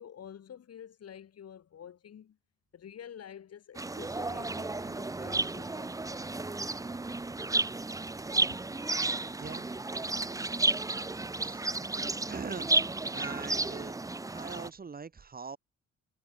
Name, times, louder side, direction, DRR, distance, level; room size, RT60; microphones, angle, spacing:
voice 1, 0.0-2.4 2.7-5.9 8.5-8.6 8.8-9.0, left 9 dB, 55° left, 2.4 m, -49 dB
sound 1, 3.8-14.7, right 2 dB, 10° right, 0.7 m, -32 dB
voice 2, 9.4-9.7 11.4-11.6 12.3-12.7 13.1-14.0 14.3-15.6, right 5 dB, 30° right, 1.4 m, -41 dB
cardioid pair, 90°, 30 cm